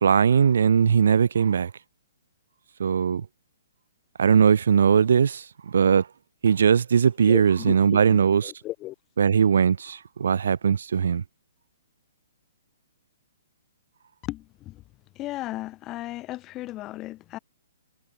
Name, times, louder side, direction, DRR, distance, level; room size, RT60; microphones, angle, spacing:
voice 1, 0.0-1.7 2.8-3.3 4.2-6.1 6.4-8.5 9.2-11.2, right 7 dB, 75° right, 2.0 m, -20 dB
voice 2, 7.3-8.9 14.3-14.8 15.1-17.4, left 16 dB, 25° left, 3.5 m, -35 dB
hypercardioid pair, 145°, 0 cm